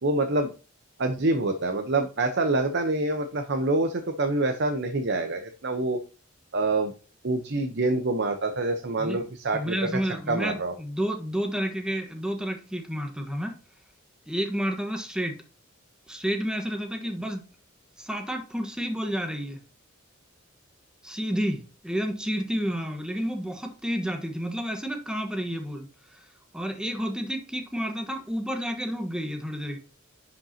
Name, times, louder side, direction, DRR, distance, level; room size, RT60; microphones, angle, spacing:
voice 1, 0.0-0.5 1.0-6.0 6.5-6.9 7.2-9.9 10.3-10.7, right 2 dB, 55° right, 0.9 m, -26 dB
voice 2, 9.5-13.6 14.3-15.4 16.1-17.4 18.0-19.6 21.0-26.2 26.5-29.8, equal, 5° right, 1.3 m, -30 dB
10.5 x 5.4 x 2.9 m
head